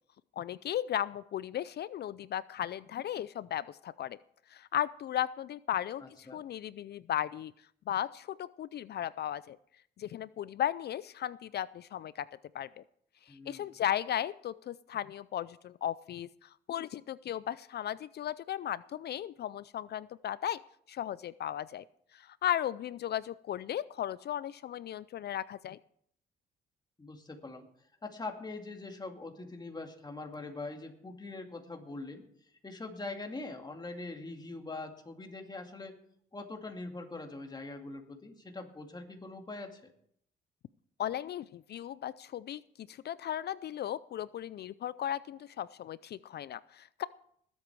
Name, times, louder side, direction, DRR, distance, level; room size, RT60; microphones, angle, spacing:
voice 1, 0.4-4.2 4.5-7.5 7.9-9.6 10.0-12.3 12.5-12.8 13.3-20.6 20.9-21.8 22.1-25.8 41.0-47.1, left 11 dB, 55° left, 18 dB, 0.4 m, -36 dB
voice 2, 6.0-6.4 13.3-13.7 27.0-27.6 28.0-32.2 32.6-36.0 36.3-39.9, left 3 dB, 20° left, 3 dB, 2.3 m, -43 dB
20.0 x 8.2 x 4.7 m, 0.68 s
cardioid pair, 90°, 20 cm